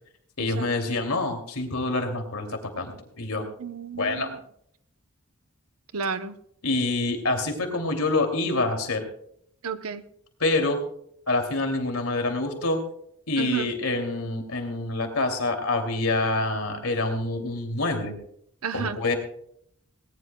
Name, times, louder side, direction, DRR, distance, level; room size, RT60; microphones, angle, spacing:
voice 1, 0.4-3.4 3.9-4.3 6.6-9.0 10.4-10.8 11.3-12.8 13.3-18.1 18.7-19.1, left 2 dB, 85° left, 4 dB, 2.7 m, -26 dB
voice 2, 3.6-4.4 5.9-6.3 9.6-10.0 13.4-13.7 18.6-19.0, right 5 dB, 80° right, 11 dB, 0.8 m, -31 dB
19.5 x 18.5 x 2.3 m, 0.70 s
head